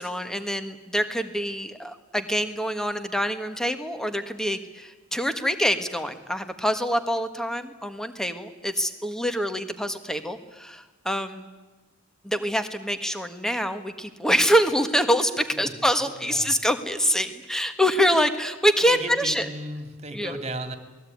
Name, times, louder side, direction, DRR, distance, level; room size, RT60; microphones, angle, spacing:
voice 1, 0.0-11.5 12.2-19.5 20.1-20.4, equal, 5° left, 9 dB, 1.6 m, -25 dB
voice 2, 16.0-16.5 18.9-20.8, right 2 dB, 30° right, 8 dB, 2.7 m, -35 dB
27.5 x 20.5 x 9.5 m, 1.2 s
head